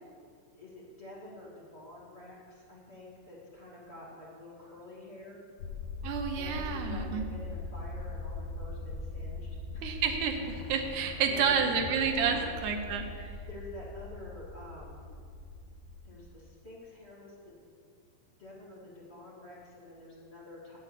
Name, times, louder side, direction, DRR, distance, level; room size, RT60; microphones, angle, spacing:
voice 1, 0.5-5.4 6.3-9.5 9.7-10.0 11.0-11.7 12.0-12.5 13.5-15.0 16.0-17.5 18.4-20.8, left 1 dB, 25° left, -7 dB, 1.6 m, -48 dB
sound 1, 5.6-16.2, left 2 dB, 90° left, 2.8 m, -41 dB
voice 2, 6.0-7.3 9.8-13.1, right 6 dB, 75° right, 4 dB, 1.9 m, -30 dB
8.8 x 8.1 x 7.3 m, 2.2 s
omnidirectional pair, 4.5 m